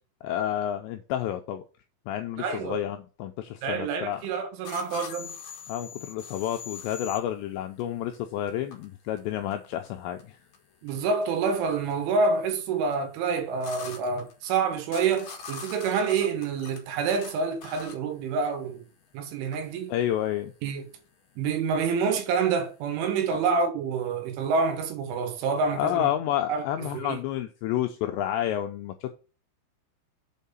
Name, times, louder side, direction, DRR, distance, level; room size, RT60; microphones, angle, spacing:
voice 1, 0.2-1.6 2.1-4.2 5.7-10.3 19.9-20.5 23.3-23.4 25.8-29.2, left 11 dB, 85° left, 2.5 m, -30 dB
voice 2, 2.4-2.8 3.6-5.3 10.8-18.9 19.1-19.9 20.6-20.9 21.4-26.1 26.5-27.2, right 5 dB, 75° right, 3.6 m, -27 dB
sound 1, 4.6-23.5, left 6 dB, 60° left, 1.9 m, -44 dB
7.3 x 4.6 x 5.4 m
omnidirectional pair, 5.7 m